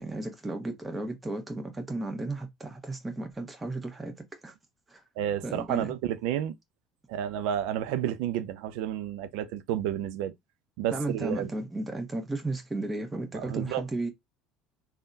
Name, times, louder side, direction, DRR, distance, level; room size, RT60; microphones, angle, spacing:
voice 1, 0.0-4.1 4.4-4.5 4.9-5.0 5.4-5.9 10.9-14.1, right 2 dB, 15° right, 1.3 m, -34 dB
voice 2, 5.2-6.6 7.1-10.3 10.8-11.5 13.3-13.8, right 10 dB, 65° right, 0.4 m, -31 dB
3.4 x 2.3 x 2.7 m
hypercardioid pair, 65°, 0 cm